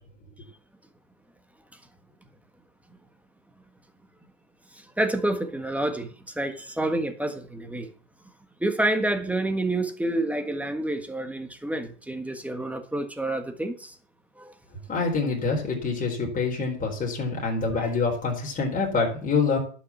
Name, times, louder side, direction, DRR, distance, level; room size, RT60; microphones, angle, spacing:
voice 1, 5.0-6.1 6.3-7.9 8.6-13.9 14.4-14.5 17.7-17.9, right 1 dB, 5° right, 1.5 m, -28 dB
voice 2, 14.9-19.6, left 4 dB, 20° left, 4.4 m, -26 dB
11.0 x 6.3 x 7.3 m
supercardioid pair, 120°, 40 cm